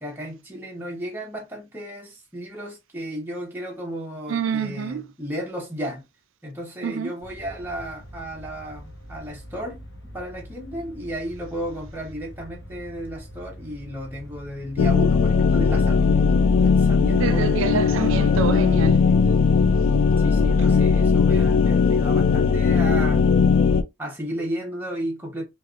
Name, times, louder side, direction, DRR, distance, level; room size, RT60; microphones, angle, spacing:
voice 1, 0.0-6.0 6.4-9.8 10.1-17.6 19.1-19.3 20.2-23.2 24.0-25.4, equal, 10° right, 0.7 m, -34 dB
voice 2, 4.3-5.1 6.8-7.1 17.0-19.0, right 6 dB, 65° right, 0.4 m, -27 dB
sound 1, 7.2-16.6, equal, 55° left, 1.0 m, -43 dB
sound 2, 14.8-23.8, left 5 dB, 80° left, 0.3 m, -18 dB
sound 3, 15.8-23.7, right 1 dB, 30° left, 1.6 m, -43 dB
3.2 x 2.4 x 2.4 m
head